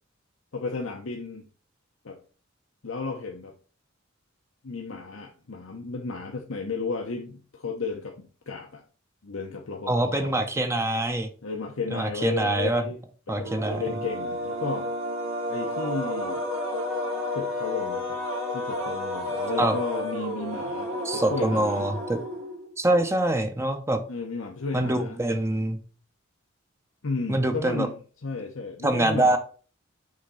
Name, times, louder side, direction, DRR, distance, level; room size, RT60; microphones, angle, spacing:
voice 1, 0.5-1.4 2.0-2.2 2.8-3.5 4.6-8.8 9.2-10.5 11.4-13.0 13.3-14.9 15.5-16.4 17.3-18.2 18.5-21.8 24.1-25.2 27.0-28.0 28.2-29.4, left 4 dB, 70° left, 0.9 m, -33 dB
voice 2, 9.9-11.3 11.9-12.8 13.3-13.8 19.6-19.7 21.0-22.2 22.8-24.0 24.7-25.8 27.3-27.9 28.8-29.4, right 1 dB, 15° right, 0.7 m, -24 dB
sound 1, 13.4-22.7, left 1 dB, 80° right, 2.7 m, -31 dB
6.4 x 3.6 x 5.5 m
head